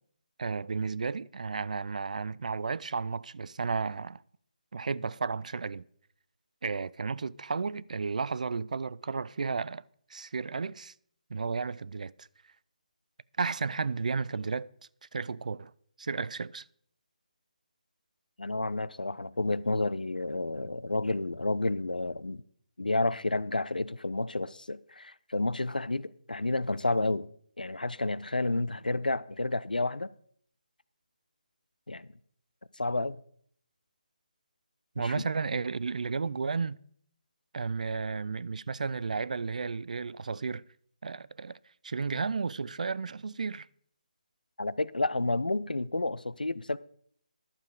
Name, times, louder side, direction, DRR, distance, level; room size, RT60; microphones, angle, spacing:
voice 1, 0.4-4.2 4.7-5.8 6.6-9.8 10.1-10.9 11.3-12.3 13.4-14.7 15.1-15.7 16.0-16.7 35.0-36.8 37.5-40.6 41.0-41.6 41.8-43.7, right 4 dB, 60° right, 0.3 m, -33 dB
voice 2, 18.4-22.4 22.8-27.3 27.6-30.1 31.9-32.1 32.8-33.2 35.0-35.3 44.6-46.8, left 2 dB, 90° left, 0.4 m, -30 dB
11.5 x 7.1 x 4.8 m
figure-of-eight pair, 150°, 4 cm